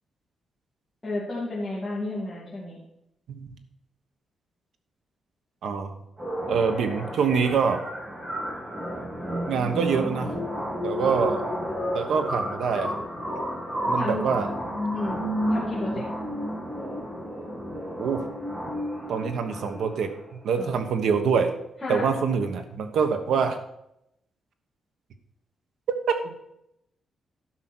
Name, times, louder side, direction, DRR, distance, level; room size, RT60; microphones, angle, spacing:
voice 1, 1.0-2.8 13.9-14.2 14.9-16.0 20.6-20.7 21.8-22.1, left 2 dB, 10° left, -8 dB, 2.5 m, -32 dB
voice 2, 5.6-5.9 6.5-7.8 9.5-10.3 10.8-11.4 11.9-12.9 13.9-14.5 18.0-18.2 19.1-20.1 20.4-21.5 21.9-23.6 26.1-26.3, right 6 dB, 75° right, 7 dB, 1.3 m, -25 dB
sound 1, 6.2-20.2, equal, 25° right, 3.7 m, -31 dB
12.0 x 5.8 x 6.2 m, 0.80 s
wide cardioid pair, 175°, 0 cm